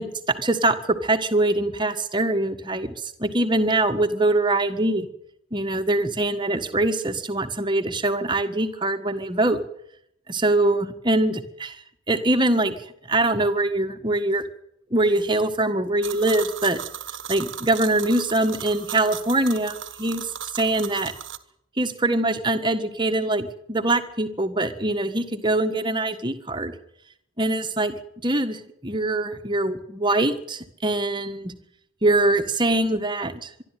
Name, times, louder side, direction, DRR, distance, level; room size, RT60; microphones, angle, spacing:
voice 1, 0.0-5.1 5.5-9.6 10.3-12.7 13.1-14.4 14.9-16.8 17.3-21.1 21.8-26.7 27.4-27.9 28.2-31.5 32.0-33.5, right 2 dB, 20° right, 7 dB, 1.6 m, -23 dB
sound 1, 16.0-21.4, right 10 dB, 60° right, 1.4 m, -36 dB
24.5 x 12.0 x 9.3 m, 0.74 s
head